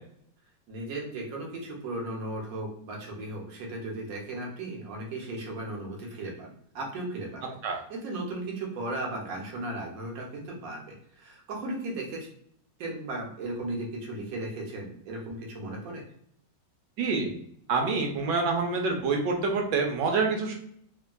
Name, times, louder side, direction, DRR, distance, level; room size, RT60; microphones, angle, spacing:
voice 1, 0.7-7.4 7.9-10.8 11.1-12.3 12.8-16.0, right 2 dB, 60° right, -1 dB, 1.1 m, -36 dB
voice 2, 17.0-17.3 17.7-20.5, right 4 dB, 80° right, 2 dB, 1.3 m, -26 dB
3.3 x 2.2 x 2.2 m, 0.67 s
omnidirectional pair, 1.9 m